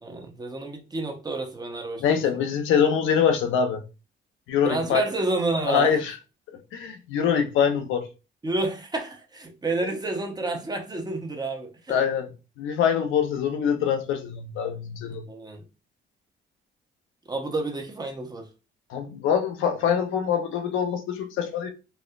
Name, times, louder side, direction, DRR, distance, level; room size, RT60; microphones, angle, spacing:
voice 1, 0.0-2.2 4.6-6.0 8.4-12.0 15.3-15.6 17.3-18.5, right 2 dB, 20° right, 0.8 m, -29 dB
voice 2, 2.0-3.8 4.5-5.0 5.6-6.1 6.7-8.1 11.9-12.3 12.6-15.2 18.9-21.7, left 7 dB, 85° left, 0.6 m, -24 dB
4.2 x 2.0 x 2.4 m
cardioid pair, 90°, 20 cm